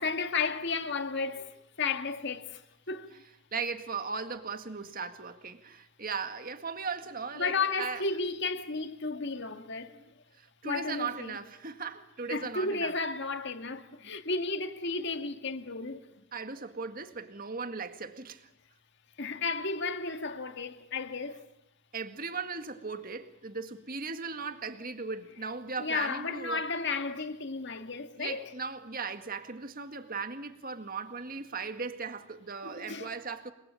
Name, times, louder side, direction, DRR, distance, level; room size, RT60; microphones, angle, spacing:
voice 1, 0.0-3.2 7.4-10.0 10.6-11.4 12.3-16.1 19.2-21.5 25.8-28.5 32.6-33.1, left 4 dB, 55° left, 2.0 m, -33 dB
voice 2, 3.5-7.5 7.8-8.0 9.9-10.1 10.4-12.9 16.3-18.5 21.9-26.6 28.2-33.5, right 5 dB, 40° right, 2.0 m, -37 dB
29.0 x 23.0 x 8.6 m
head